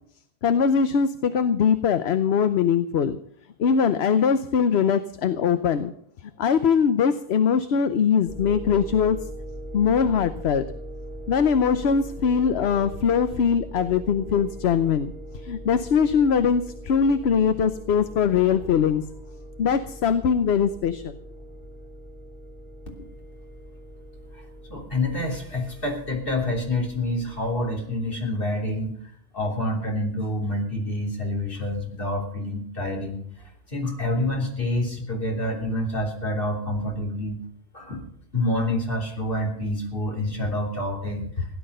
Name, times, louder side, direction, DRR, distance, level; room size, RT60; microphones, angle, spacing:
voice 1, 0.4-3.2 3.6-5.9 6.4-9.2 9.7-10.7 11.3-15.1 15.4-19.0 19.6-21.2, left 7 dB, 80° left, 11 dB, 1.0 m, -21 dB
sound 1, 8.3-27.7, equal, 15° left, 3.2 m, -40 dB
voice 2, 24.7-37.4 37.7-38.0 38.3-41.5, left 1 dB, 60° left, 0 dB, 3.6 m, -27 dB
16.5 x 11.0 x 6.6 m, 0.65 s
omnidirectional pair, 1.1 m